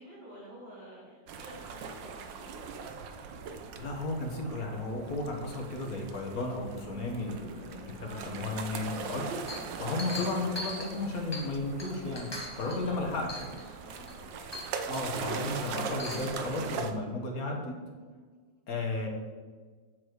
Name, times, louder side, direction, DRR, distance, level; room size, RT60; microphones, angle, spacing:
voice 1, 0.0-2.6 7.9-8.7 12.5-14.4, equal, 50° right, -8 dB, 3.1 m, -50 dB
sound 1, 1.3-16.9, right 5 dB, 75° right, 1.5 m, -40 dB
voice 2, 3.8-12.3 12.6-13.3 14.9-17.7 18.7-19.1, left 2 dB, 55° left, 1 dB, 1.8 m, -34 dB
Chink clink, 9.5-11.5 11.8-12.8 13.3-13.7 14.1-14.2 14.5-15.0 15.8-16.3, left 2 dB, 15° left, 1.0 m, -41 dB
8.3 x 7.0 x 4.7 m, 1.5 s
omnidirectional pair, 2.0 m